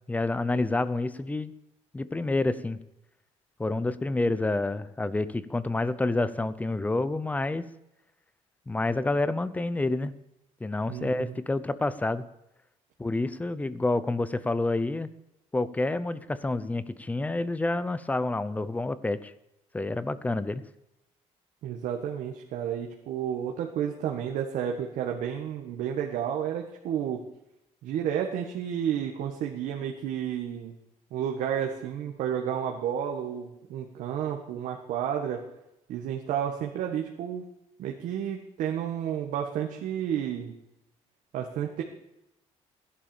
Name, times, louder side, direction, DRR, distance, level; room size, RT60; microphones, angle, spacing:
voice 1, 0.1-1.5 1.9-2.8 3.6-7.6 8.7-10.1 10.6-12.2 13.0-15.1 15.5-19.3 19.7-20.6, left 2 dB, 10° left, 15 dB, 0.8 m, -28 dB
voice 2, 10.9-11.3 21.6-27.2 27.8-30.7 31.1-35.4 35.9-37.4 37.8-40.5 41.3-41.8, right 9 dB, 85° right, 1 dB, 1.7 m, -31 dB
16.5 x 11.0 x 7.2 m, 0.86 s
cardioid pair, 155°, 13 cm